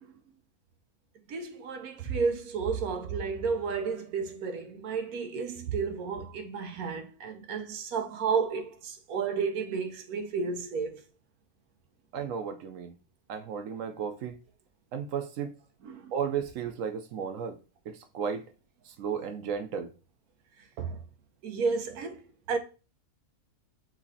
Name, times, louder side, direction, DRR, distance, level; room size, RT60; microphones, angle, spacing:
voice 1, 1.3-11.0 15.8-16.1 20.8-21.0 21.4-22.2 22.5-22.6, right 5 dB, 90° right, 1.2 m, -32 dB
voice 2, 12.1-12.9 13.3-14.4 14.9-15.5 16.1-17.6 17.9-18.4 18.9-19.9, right 7 dB, 70° right, 1.0 m, -34 dB
5.6 x 3.1 x 2.7 m
omnidirectional pair, 1.5 m